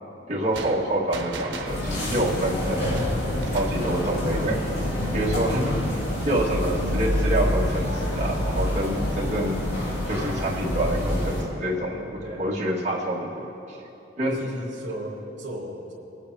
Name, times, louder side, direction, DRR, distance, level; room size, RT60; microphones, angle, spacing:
voice 1, 0.3-2.9 3.5-4.6 5.1-5.7 6.3-9.7 10.1-13.8 14.2-14.4, right 1 dB, 40° right, -6 dB, 1.9 m, -27 dB
sound 1, 0.5-3.9, right 3 dB, 90° right, 0.9 m, -38 dB
sound 2, 1.6-11.4, left 1 dB, 60° left, 2.9 m, -27 dB
voice 2, 12.2-12.6 14.2-15.9, equal, 70° right, -3 dB, 2.4 m, -36 dB
23.0 x 8.4 x 2.8 m, 2.8 s
head